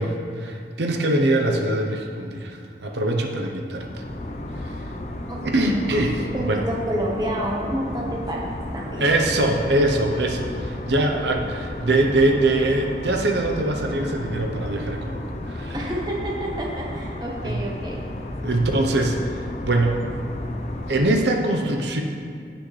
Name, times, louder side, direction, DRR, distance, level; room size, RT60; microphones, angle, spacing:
voice 1, 0.0-3.8 4.6-4.7 5.4-6.2 6.5-6.6 9.0-15.8 17.4-17.6 18.4-19.2 19.6-20.0 20.9-22.0, right 2 dB, 80° right, 2 dB, 0.8 m, -22 dB
sound 1, 3.7-21.1, left 1 dB, 40° left, 0.7 m, -33 dB
voice 2, 5.3-5.7 6.1-8.5 8.7-9.0 15.7-18.0, right 1 dB, 25° right, -3 dB, 1.2 m, -29 dB
16.0 x 6.3 x 3.3 m, 2.3 s
head